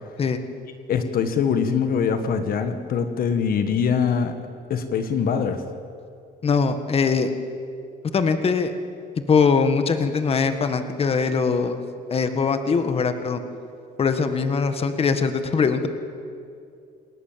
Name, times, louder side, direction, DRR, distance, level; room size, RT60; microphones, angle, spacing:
voice 1, 0.9-4.3 4.7-5.6, left 6 dB, 60° left, 8 dB, 1.5 m, -23 dB
voice 2, 6.4-7.3 8.1-8.7 9.3-11.8 12.1-13.4 14.0-15.9, left 5 dB, 35° left, 8 dB, 1.6 m, -21 dB
28.5 x 19.0 x 7.5 m, 2.4 s
cardioid pair, 110°, 17 cm